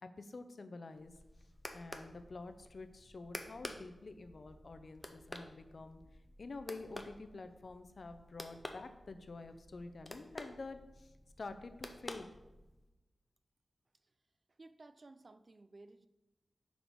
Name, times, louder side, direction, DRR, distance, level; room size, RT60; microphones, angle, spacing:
voice 1, 0.0-1.1 1.7-6.0 6.4-12.3, left 3 dB, 55° left, 9 dB, 0.6 m, -48 dB
sound 1, 0.9-12.9, left 1 dB, 10° left, 0.6 m, -51 dB
voice 2, 14.5-16.1, right 2 dB, 40° right, 11 dB, 0.3 m, -57 dB
6.1 x 4.7 x 5.2 m, 1.0 s
wide cardioid pair, 125°, 0 cm